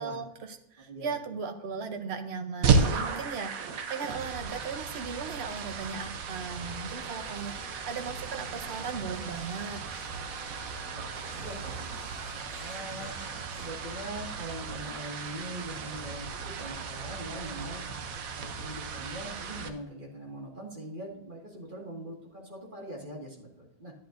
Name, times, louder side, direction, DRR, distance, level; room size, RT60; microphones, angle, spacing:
voice 1, 0.0-9.8, right 5 dB, 80° right, 6 dB, 0.5 m, -37 dB
voice 2, 0.9-1.4 10.9-12.0 12.6-13.1 13.6-17.8 18.3-23.9, right 1 dB, 25° right, -2 dB, 1.9 m, -42 dB
sound 1, 2.6-19.7, right 5 dB, 60° right, 1.0 m, -34 dB
Printer, 6.5-14.4, left 1 dB, 25° left, 2.9 m, -51 dB
11.0 x 9.6 x 2.5 m, 0.84 s
omnidirectional pair, 2.0 m